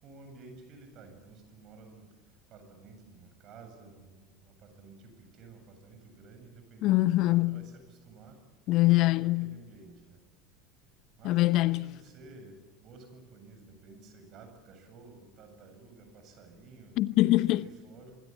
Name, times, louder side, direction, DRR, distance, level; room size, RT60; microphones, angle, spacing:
voice 1, 0.0-2.1 2.5-8.4 9.2-10.2 11.2-17.0 17.6-18.2, right 3 dB, 45° right, 7.9 m, -52 dB
voice 2, 6.8-7.6 8.7-9.5 11.2-11.9 17.0-17.7, left 17 dB, 50° left, 0.8 m, -24 dB
26.5 x 23.5 x 8.7 m
figure-of-eight pair, 75°, 0 cm